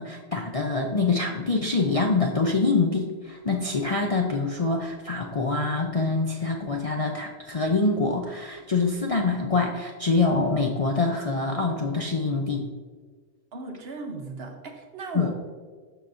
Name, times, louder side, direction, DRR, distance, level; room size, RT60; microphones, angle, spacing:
voice 1, 0.0-12.6 15.1-15.3, left 3 dB, 40° left, 1 dB, 0.5 m, -25 dB
voice 2, 13.5-15.3, right 3 dB, 55° right, 3 dB, 1.2 m, -36 dB
13.0 x 4.9 x 2.6 m, 1.5 s
omnidirectional pair, 1.2 m